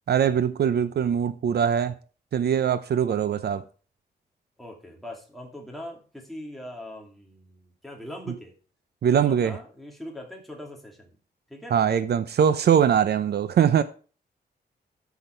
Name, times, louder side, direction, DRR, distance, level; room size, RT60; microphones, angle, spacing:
voice 1, 0.1-2.0 2.3-3.6 9.0-9.6 11.7-13.8, right 8 dB, 70° right, 0.7 m, -22 dB
voice 2, 4.6-8.5 9.1-11.2 11.5-11.8, left 1 dB, ahead, 2.6 m, -41 dB
13.5 x 5.9 x 4.5 m
wide cardioid pair, 155°, 18 cm